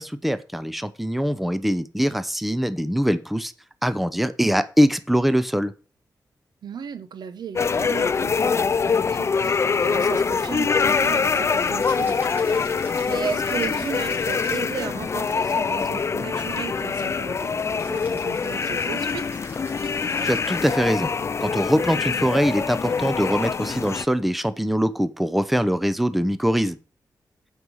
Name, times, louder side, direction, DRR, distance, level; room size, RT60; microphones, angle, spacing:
voice 1, 0.0-3.5 3.8-5.7 20.2-21.1 21.4-26.8, equal, ahead, 0.7 m, -23 dB
voice 2, 6.6-19.2, right 7 dB, 80° right, 0.8 m, -35 dB
sound 1, 7.6-24.1, left 5 dB, 40° left, 0.4 m, -24 dB
Rattle (instrument), 11.8-14.8 17.8-21.0, right 1 dB, 25° right, 4.5 m, -45 dB
8.0 x 5.6 x 6.3 m
wide cardioid pair, 100°, 7 cm